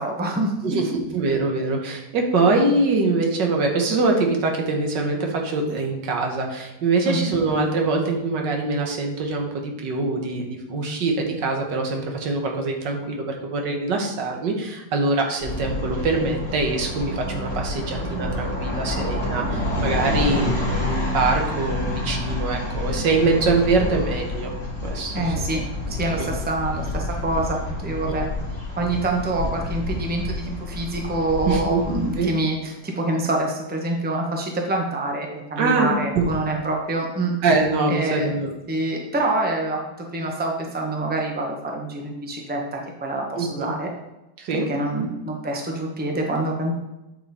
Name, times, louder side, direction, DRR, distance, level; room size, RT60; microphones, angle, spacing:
voice 1, 0.0-1.0 7.1-7.3 25.1-25.6 25.9-28.3 28.8-37.3 37.9-38.3 38.7-39.8 40.1-43.9 44.5-46.7, right 2 dB, 5° right, 1 dB, 0.8 m, -26 dB
voice 2, 0.6-24.5 24.8-25.3 26.2-26.3 31.4-31.8 32.2-32.3 35.6-36.4 37.4-38.5 43.4-43.7 44.4-44.7, right 3 dB, 80° right, 2 dB, 1.9 m, -23 dB
sound 1, 15.4-32.2, left 2 dB, 35° right, 3.5 m, -28 dB
8.3 x 5.8 x 4.3 m, 0.95 s
omnidirectional pair, 1.9 m